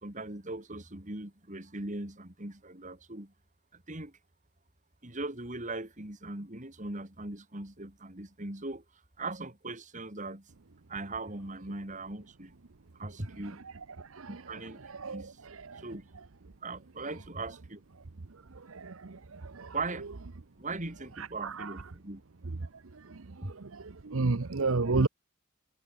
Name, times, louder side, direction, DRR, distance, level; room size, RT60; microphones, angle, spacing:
voice 1, 0.0-3.3 3.7-4.1 5.0-8.8 9.2-10.5 10.9-12.5 13.0-13.6 14.3-15.4 15.8-16.1 16.6-17.8 19.7-20.1 20.6-22.2 23.4-23.5, right 2 dB, 35° right, 3.1 m, -39 dB
voice 2, 24.1-25.1, right 3 dB, 70° right, 0.9 m, -28 dB
head